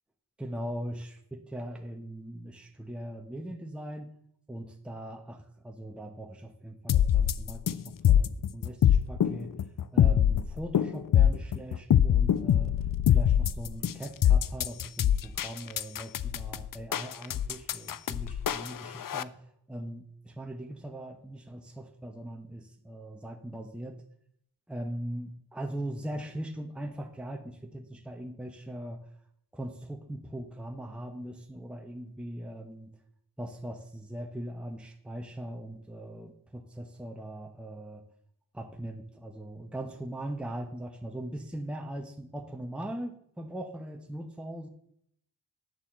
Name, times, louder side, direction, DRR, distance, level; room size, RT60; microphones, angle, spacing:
voice 1, 0.4-4.1 4.5-9.5 9.9-12.8 13.1-24.0 24.7-29.0 29.5-32.9 33.4-38.0 38.5-44.7, right 1 dB, 5° right, 4 dB, 1.0 m, -40 dB
sound 1, 6.9-19.2, left 10 dB, 55° left, 0.5 m, -24 dB
9.4 x 4.2 x 7.3 m, 0.69 s
cardioid pair, 50°, 39 cm